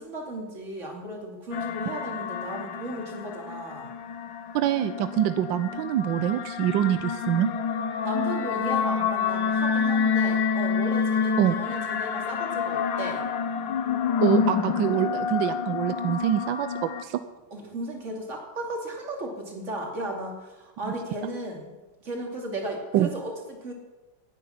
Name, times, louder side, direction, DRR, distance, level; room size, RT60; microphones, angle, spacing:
voice 1, 0.0-3.9 8.0-13.2 17.5-21.7 22.0-23.7, right 1 dB, 40° right, 0 dB, 3.0 m, -35 dB
sound 1, 1.5-17.0, left 6 dB, 90° left, 1.7 m, -28 dB
voice 2, 4.5-7.5 11.4-11.6 14.2-17.2 22.9-23.1, right 12 dB, 90° right, 11 dB, 1.4 m, -25 dB
19.0 x 9.3 x 5.7 m, 1.2 s
omnidirectional pair, 2.0 m